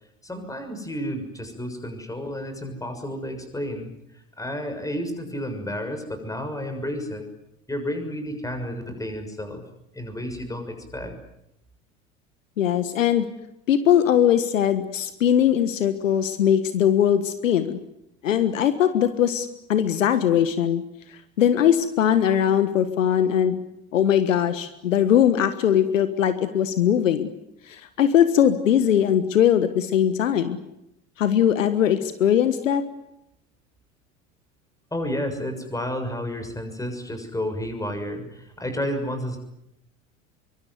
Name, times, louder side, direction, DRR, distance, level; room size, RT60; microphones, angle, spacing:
voice 1, 0.2-3.9 4.4-7.3 7.7-9.6 9.9-11.1 34.9-39.4, equal, 10° left, 6 dB, 6.7 m, -31 dB
voice 2, 12.6-13.3 13.7-17.8 18.2-20.8 21.4-23.5 23.9-27.3 27.7-30.6 31.2-32.8, left 9 dB, 70° left, 12 dB, 1.5 m, -20 dB
24.0 x 23.5 x 9.6 m, 0.83 s
figure-of-eight pair, 70°, 40 cm